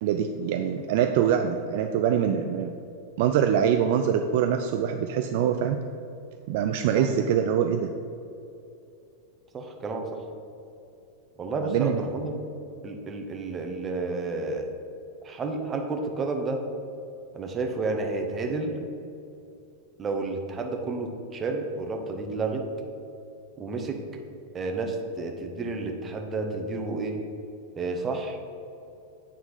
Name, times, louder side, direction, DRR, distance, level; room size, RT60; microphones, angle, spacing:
voice 1, 0.0-2.7 3.2-5.8 6.5-7.9 11.6-12.0, right 8 dB, 50° right, 6 dB, 0.3 m, -24 dB
voice 2, 9.5-10.2 11.4-12.4 12.8-14.7 15.2-16.6 17.3-18.8 20.0-22.6 23.6-24.0 24.5-27.2 27.8-28.4, right 3 dB, 20° right, 3 dB, 0.9 m, -31 dB
8.3 x 3.8 x 5.2 m, 2.7 s
figure-of-eight pair, 90°, 0 cm